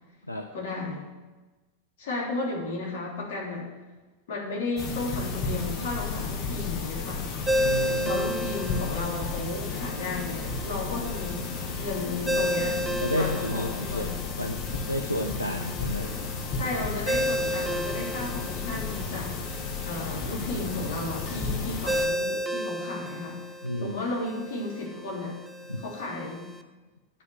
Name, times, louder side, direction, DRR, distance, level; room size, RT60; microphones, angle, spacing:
voice 1, 0.5-1.0 2.0-3.7 4.3-7.2 8.0-11.4 11.8-12.8 13.1-14.2 16.6-19.4 19.8-23.4 23.8-25.4 25.8-26.5, left 2 dB, 55° left, -3 dB, 3.3 m, -33 dB
sound 1, 4.8-22.1, left 4 dB, 35° left, 1.4 m, -33 dB
Ringtone, 7.5-26.6, equal, 10° right, 0.7 m, -33 dB
voice 2, 7.6-8.1 13.0-14.1 14.4-16.2 23.6-24.0 25.7-25.8, left 1 dB, 85° left, 4 dB, 0.6 m, -31 dB
9.9 x 5.3 x 7.9 m, 1.2 s
figure-of-eight pair, 90°, 0 cm